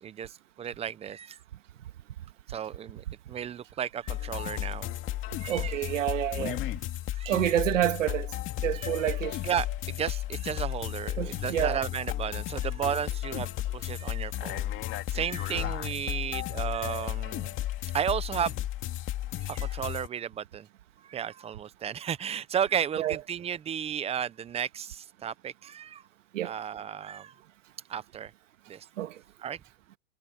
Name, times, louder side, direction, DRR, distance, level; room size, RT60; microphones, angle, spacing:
voice 1, 0.0-1.4 2.5-4.9 5.4-5.9 7.1-7.5 8.7-9.2 9.4-14.7 15.1-17.5 17.9-18.6 19.4-20.7 21.0-26.0 26.4-27.4 27.9-28.3 28.7-28.9 29.4-29.6, right 8 dB, 15° right, 0.8 m, -34 dB
sound 1, 4.1-20.1, left 14 dB, 35° left, 2.3 m, -34 dB
voice 2, 5.5-6.6 7.3-8.3 8.6-9.4 11.2-11.8 23.0-23.2 26.3-26.5 29.0-29.2, right 12 dB, 85° right, 2.0 m, -28 dB
supercardioid pair, 135°, 37 cm